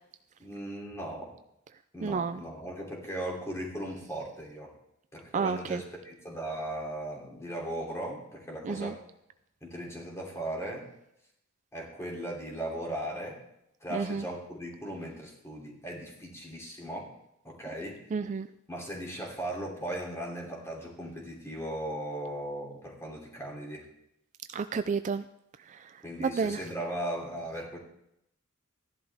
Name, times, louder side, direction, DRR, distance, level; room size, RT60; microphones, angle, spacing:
voice 1, 0.4-1.3 1.9-4.7 5.1-9.0 9.6-10.9 11.7-13.4 13.8-17.1 17.4-18.0 18.7-23.9 26.0-27.8, right 1 dB, 15° left, -1 dB, 3.0 m, -37 dB
voice 2, 2.0-2.4 5.3-5.8 8.6-8.9 13.9-14.2 18.1-18.5 24.5-25.2 25.7-25.9 26.2-26.6, right 5 dB, 35° right, 11 dB, 0.3 m, -30 dB
15.5 x 11.0 x 3.5 m, 0.80 s
head